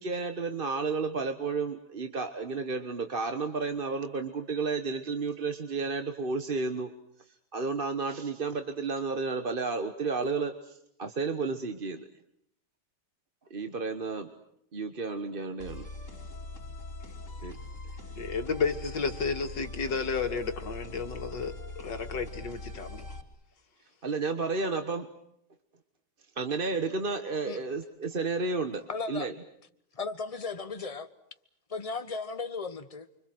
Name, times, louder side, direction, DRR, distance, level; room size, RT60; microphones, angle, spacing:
voice 1, 0.0-6.9 7.3-12.1 13.5-14.3 14.7-15.9 17.4-17.5 24.0-25.1 26.3-28.8 29.1-29.3, right 4 dB, 35° right, 1.4 m, -32 dB
sound 1, 15.6-23.2, left 2 dB, 45° left, 4.7 m, -42 dB
voice 2, 18.2-23.2, left 5 dB, 80° left, 2.6 m, -32 dB
voice 3, 28.9-29.3 29.9-31.1 31.7-33.1, left 4 dB, 20° left, 1.2 m, -35 dB
29.5 x 25.0 x 7.9 m
omnidirectional pair, 1.9 m